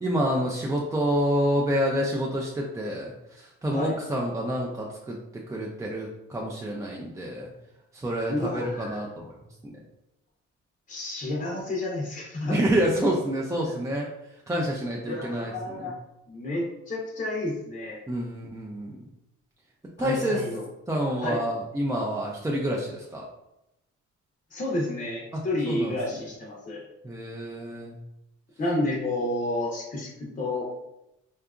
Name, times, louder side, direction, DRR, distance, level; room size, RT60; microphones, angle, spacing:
voice 1, 0.0-5.2 5.5-7.5 7.9-9.4 9.6-9.8 12.5-14.1 14.5-15.9 18.1-19.0 20.0-20.4 20.9-23.3 25.3-25.4 25.7-26.0 27.0-28.0, equal, 10° right, -3 dB, 0.3 m, -28 dB
voice 2, 8.3-9.0 10.9-12.6 13.7-13.8 15.1-15.9 16.3-18.0 20.0-20.6 21.2-21.4 24.5-26.8 28.6-30.7, left 1 dB, 25° left, -3 dB, 0.6 m, -30 dB
2.7 x 2.3 x 2.4 m, 0.89 s
cardioid pair, 90°, 30 cm